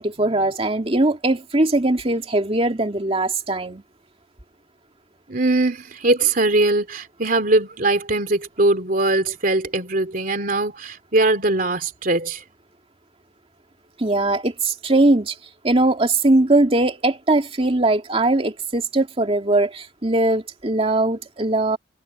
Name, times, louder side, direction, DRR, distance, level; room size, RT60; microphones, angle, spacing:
voice 1, 0.0-3.8 14.0-15.4 15.6-21.8, right 2 dB, 30° right, 2.4 m, -20 dB
voice 2, 5.3-12.4, right 2 dB, 50° right, 3.1 m, -21 dB
head